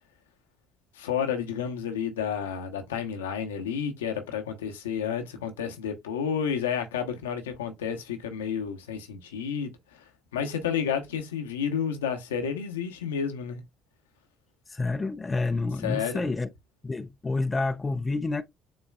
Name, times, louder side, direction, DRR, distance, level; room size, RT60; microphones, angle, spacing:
voice 1, 0.9-13.6 15.8-16.2, left 7 dB, 85° left, 0.8 m, -31 dB
voice 2, 14.7-16.5 16.8-18.4, left 3 dB, 25° left, 0.5 m, -28 dB
7.2 x 3.1 x 2.2 m
hypercardioid pair, 55°, 0 cm